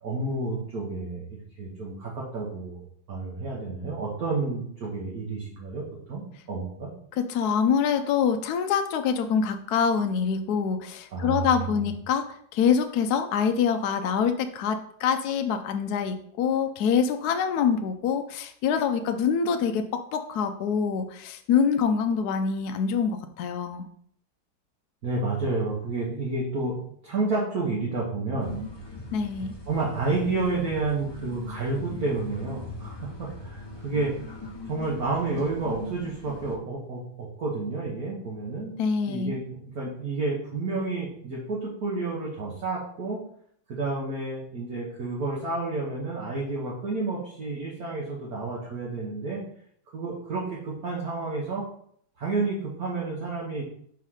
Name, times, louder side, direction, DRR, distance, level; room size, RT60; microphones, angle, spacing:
voice 1, 0.0-5.8 6.1-6.9 11.1-11.8 25.0-28.6 29.7-34.1 34.7-38.7 39.1-43.2 43.7-49.4 49.9-51.6 52.2-53.6, right 3 dB, 60° right, -5 dB, 1.8 m, -30 dB
voice 2, 7.2-23.9 29.1-29.5 38.8-39.4, left 6 dB, 70° left, 7 dB, 1.0 m, -25 dB
sound 1, 28.4-36.6, left 2 dB, 25° left, 0.6 m, -40 dB
5.7 x 4.6 x 4.9 m, 0.64 s
omnidirectional pair, 1.9 m